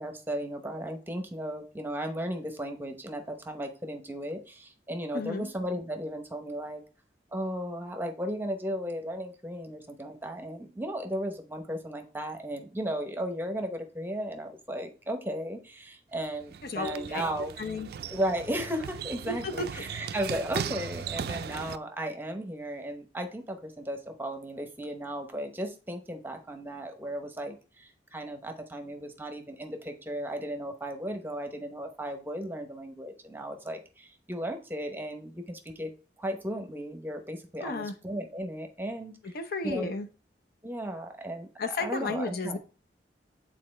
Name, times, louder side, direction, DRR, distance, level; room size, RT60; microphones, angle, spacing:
voice 1, 0.0-6.8 7.3-17.5 18.1-35.9 36.2-39.3 39.6-39.9 40.6-42.6, equal, 10° right, 0.8 m, -35 dB
voice 2, 5.1-5.5 16.6-17.2 17.6-17.9 19.3-19.7 37.6-38.0 39.2-40.1 41.6-42.6, left 3 dB, 60° left, 0.7 m, -33 dB
sound 1, 16.1-21.8, right 7 dB, 60° right, 0.3 m, -38 dB
8.4 x 4.0 x 3.2 m
head